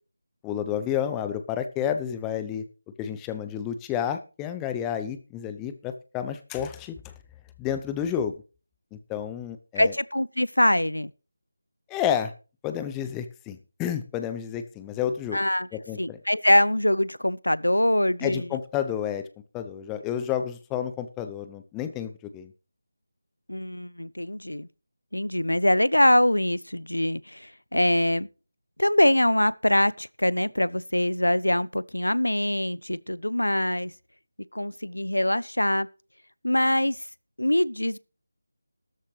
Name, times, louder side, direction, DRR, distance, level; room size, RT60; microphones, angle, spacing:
voice 1, 0.4-2.6 3.0-7.1 7.6-8.3 8.9-9.9 11.9-12.3 12.6-15.4 15.7-16.2 18.2-19.2 19.5-22.5, left 9 dB, 10° left, 0.8 m, -30 dB
voice 2, 9.8-11.1 15.3-15.7 16.0-18.5 23.5-24.7 25.1-28.3 28.8-33.9 34.5-35.9 36.4-37.0 37.4-38.0, left 1 dB, 80° left, 0.6 m, -23 dB
13.0 x 12.5 x 3.2 m
figure-of-eight pair, 160°, 0 cm